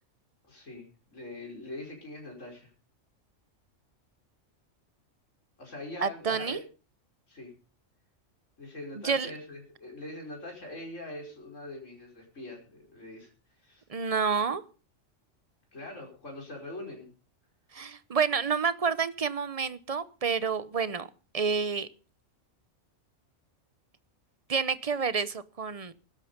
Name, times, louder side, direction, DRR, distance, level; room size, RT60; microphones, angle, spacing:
voice 1, 0.4-2.7 5.6-6.6 7.3-7.5 8.6-13.3 13.6-13.8 15.7-17.1, left 2 dB, 70° left, 0 dB, 5.4 m, -43 dB
voice 2, 6.0-6.6 9.0-9.3 13.9-14.6 17.7-21.1 21.3-21.9 24.5-25.9, right 5 dB, 35° right, 16 dB, 0.8 m, -29 dB
16.0 x 13.0 x 5.2 m, 0.36 s
omnidirectional pair, 1.3 m